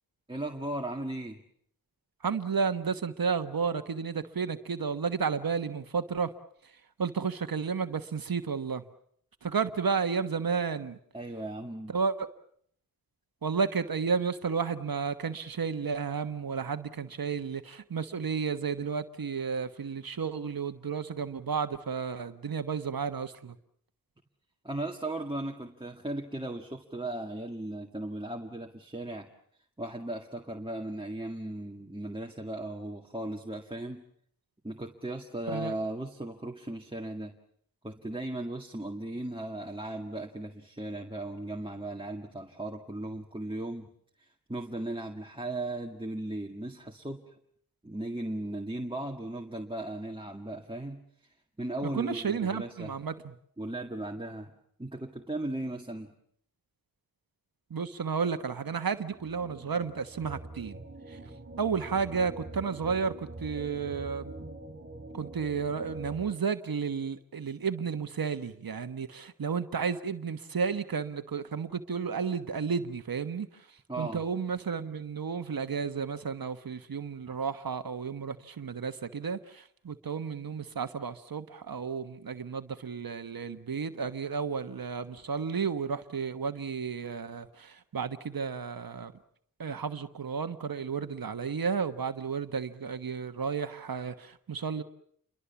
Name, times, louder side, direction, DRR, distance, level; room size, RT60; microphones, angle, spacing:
voice 1, 0.3-1.4 11.1-12.0 24.6-29.3 29.8-34.0 34.6-37.3 37.8-43.9 44.2-47.2 47.8-51.0 51.6-52.9 53.6-54.5 54.8-56.2 73.9-74.2, right 1 dB, 15° right, 1 dB, 2.0 m, -37 dB
voice 2, 2.2-6.3 7.0-8.8 9.4-11.0 11.9-12.1 13.4-23.5 35.5-35.7 51.9-53.1 57.7-60.8 61.6-64.4 65.1-73.5 74.0-89.1 89.6-94.8, right 6 dB, 70° right, 9 dB, 1.3 m, -32 dB
sound 1, 59.0-66.3, right 2 dB, 35° right, 3.3 m, -44 dB
29.0 x 23.5 x 7.1 m, 0.66 s
wide cardioid pair, 80°, 36 cm